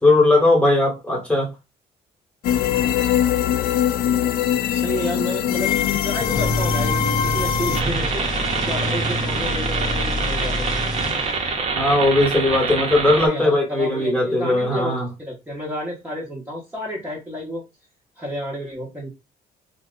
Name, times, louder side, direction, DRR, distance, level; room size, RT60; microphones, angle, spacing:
voice 1, 0.0-1.5 11.7-15.1, left 2 dB, 5° left, 1.3 m, -18 dB
sound 1, 2.4-7.8, left 10 dB, 65° left, 0.4 m, -22 dB
voice 2, 4.6-8.2 8.6-10.7 13.2-17.6 18.2-19.1, equal, 10° right, 1.0 m, -30 dB
sound 2, 6.1-11.6, left 1 dB, 25° left, 0.7 m, -27 dB
sound 3, 7.7-13.3, right 4 dB, 40° right, 0.8 m, -25 dB
2.8 x 2.1 x 3.7 m
cardioid pair, 110°, 17 cm